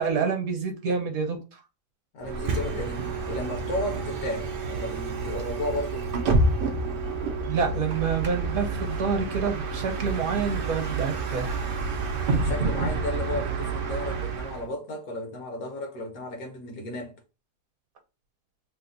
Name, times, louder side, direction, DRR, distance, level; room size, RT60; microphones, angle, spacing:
voice 1, 0.0-1.4 7.5-11.7, right 5 dB, 65° right, 1.2 m, -27 dB
voice 2, 2.1-6.1 12.4-17.2, left 2 dB, 65° left, 1.3 m, -34 dB
Bus, 2.2-14.7, right 3 dB, 80° right, 0.5 m, -29 dB
3.2 x 2.1 x 3.8 m
omnidirectional pair, 1.7 m